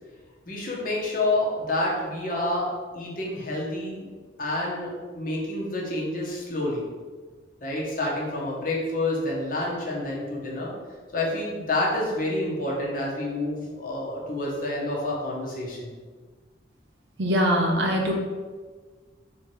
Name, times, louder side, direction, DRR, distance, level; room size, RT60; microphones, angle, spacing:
voice 1, 0.5-2.7 2.9-4.1 4.4-6.8 7.6-10.7 11.1-15.9, left 2 dB, 45° left, -4 dB, 1.0 m, -28 dB
voice 2, 17.2-18.1, equal, 70° right, 1 dB, 0.7 m, -22 dB
3.5 x 3.0 x 4.7 m, 1.4 s
head